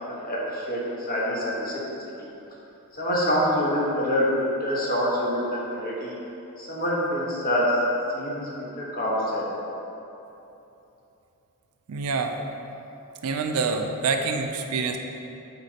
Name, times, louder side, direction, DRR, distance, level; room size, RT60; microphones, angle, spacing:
voice 1, 0.1-0.8 1.1-1.7 2.9-5.4 5.7-6.1 6.6-7.7 8.1-8.4 8.8-9.5, equal, 40° left, -6 dB, 1.3 m, -25 dB
voice 2, 11.9-12.4 13.2-15.0, right 4 dB, 75° right, 5 dB, 0.4 m, -26 dB
8.0 x 4.3 x 2.8 m, 3.0 s
head